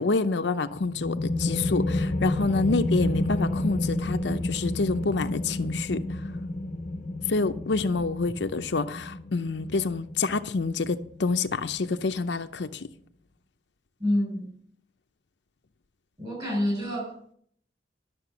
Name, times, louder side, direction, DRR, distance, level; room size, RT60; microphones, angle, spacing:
voice 1, 0.0-6.2 7.3-12.9, left 3 dB, 80° left, 0.6 m, -27 dB
sound 1, 0.7-12.1, left 2 dB, 40° left, 0.7 m, -30 dB
voice 2, 14.0-14.5 16.2-17.4, left 1 dB, 25° right, 6.4 m, -28 dB
11.5 x 6.9 x 6.9 m
head